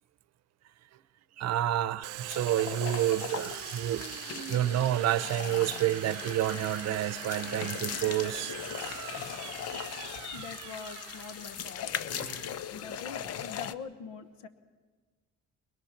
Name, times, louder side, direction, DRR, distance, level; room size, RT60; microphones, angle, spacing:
voice 1, 1.4-4.0 4.5-8.6 8.8-8.9, right 12 dB, 55° right, 0.8 m, -29 dB
Domestic sounds home sounds, 2.0-13.4, right 17 dB, 90° right, 0.6 m, -42 dB
sound 1, 2.3-13.7, left 9 dB, 55° left, 0.8 m, -39 dB
voice 2, 10.0-11.9 12.5-14.5, left 6 dB, 90° left, 1.2 m, -44 dB
22.0 x 21.5 x 5.9 m
cardioid pair, 130°, 30 cm